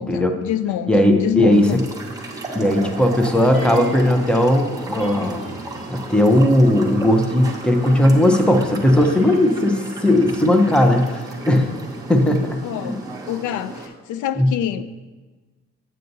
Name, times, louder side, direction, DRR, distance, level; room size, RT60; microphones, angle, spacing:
voice 1, 0.0-1.8 12.6-13.0 13.3-14.9, left 10 dB, 85° left, 12 dB, 0.5 m, -26 dB
voice 2, 0.9-1.8 2.5-5.5 5.9-11.7 12.1-13.0 14.4-14.5, left 1 dB, 5° left, 4 dB, 0.6 m, -17 dB
sound 1, 1.5-13.9, right 2 dB, 10° right, 1.0 m, -35 dB
sound 2, 3.5-4.4 5.0-6.6 7.6-11.9 12.1-12.2, equal, 45° left, 1.9 m, -36 dB
9.1 x 7.8 x 2.7 m, 1.2 s
cardioid pair, 150°, 29 cm